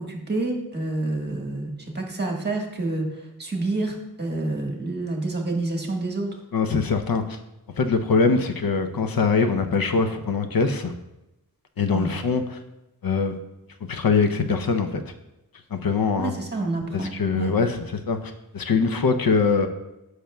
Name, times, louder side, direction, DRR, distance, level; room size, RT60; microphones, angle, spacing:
voice 1, 0.0-6.3 11.9-12.1 16.2-17.5, right 2 dB, 25° right, 0 dB, 1.4 m, -28 dB
voice 2, 6.5-7.4 7.8-10.9 11.8-12.6 13.0-13.3 13.9-15.0 15.7-16.3 16.9-17.8 18.1-19.7, left 4 dB, 65° left, 7 dB, 0.7 m, -22 dB
10.0 x 6.4 x 2.3 m, 0.94 s
wide cardioid pair, 110°, 37 cm